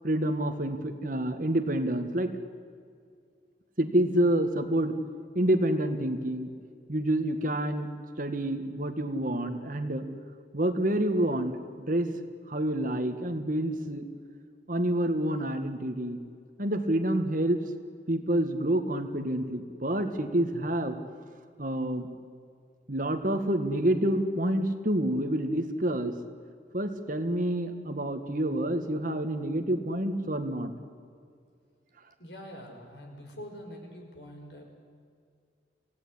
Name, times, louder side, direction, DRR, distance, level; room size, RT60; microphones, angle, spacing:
voice 1, 0.0-2.3 3.8-5.0 5.4-6.5 6.9-7.9 8.2-10.1 10.5-12.1 12.5-14.1 14.7-16.2 16.6-17.6 18.1-21.0 21.6-22.1 22.9-26.1 26.7-30.7, right 1 dB, 50° right, 7 dB, 1.9 m, -28 dB
voice 2, 32.2-34.7, equal, 75° left, 3 dB, 5.7 m, -44 dB
26.0 x 17.0 x 9.9 m, 2.2 s
head